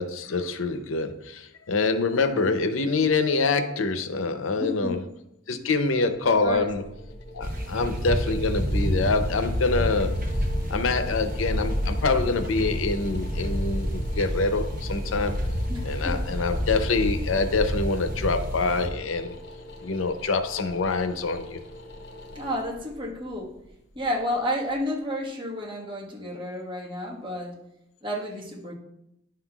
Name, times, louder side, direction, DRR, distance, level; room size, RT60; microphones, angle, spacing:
voice 1, 0.0-5.0 5.5-6.8 7.3-10.2 10.7-15.4 15.8-19.3 19.8-21.6, left 3 dB, 90° left, 9 dB, 0.6 m, -25 dB
voice 2, 4.6-5.0 5.5-5.7 6.2-6.7 15.7-16.2 22.3-23.5 23.9-27.6 28.0-28.8, equal, 25° right, -3 dB, 1.4 m, -31 dB
sound 1, 6.1-25.0, left 1 dB, 60° left, 1.0 m, -44 dB
sound 2, 7.4-18.9, equal, 45° right, 1.0 m, -28 dB
10.5 x 5.6 x 2.3 m, 0.81 s
head